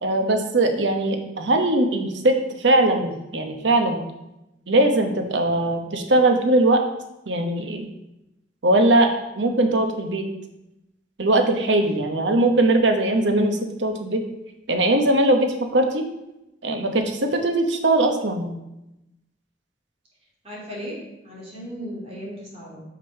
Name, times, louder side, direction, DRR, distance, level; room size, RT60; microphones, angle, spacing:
voice 1, 0.0-4.0 4.7-6.8 7.3-7.9 8.6-10.3 11.2-14.2 14.7-16.0 16.6-18.5, right 1 dB, 85° right, 5 dB, 1.0 m, -20 dB
voice 2, 20.4-21.0 21.2-22.8, equal, 35° right, -5 dB, 2.8 m, -36 dB
6.0 x 5.1 x 5.7 m, 0.90 s
head